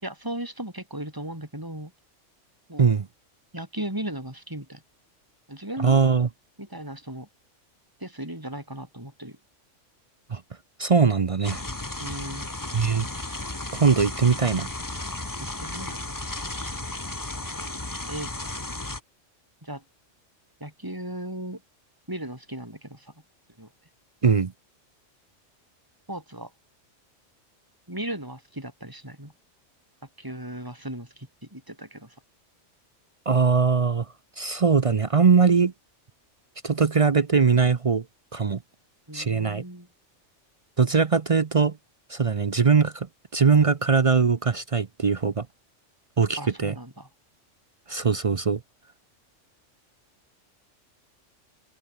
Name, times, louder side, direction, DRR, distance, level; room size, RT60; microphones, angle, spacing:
voice 1, 0.0-1.9 2.7-2.9 3.5-4.8 5.5-6.0 6.6-7.3 8.0-9.4 12.0-12.5 15.4-16.0 18.1-18.3 19.6-19.8 20.6-21.6 22.1-23.1 23.6-23.7 26.1-26.5 27.9-29.3 30.2-32.2 39.1-39.9 46.4-47.1, right 1 dB, 15° right, 5.6 m, -36 dB
voice 2, 5.8-6.3 10.3-10.4 10.8-11.6 12.7-13.1 13.7-14.7 24.2-24.5 33.3-34.1 34.4-35.7 36.6-38.0 38.3-38.6 39.1-39.6 40.8-41.8 42.1-43.1 43.3-45.5 46.2-46.7 47.9-48.6, right 5 dB, 40° right, 0.5 m, -21 dB
sound 1, 11.4-19.0, left 2 dB, 15° left, 1.5 m, -34 dB
open air
omnidirectional pair, 1.3 m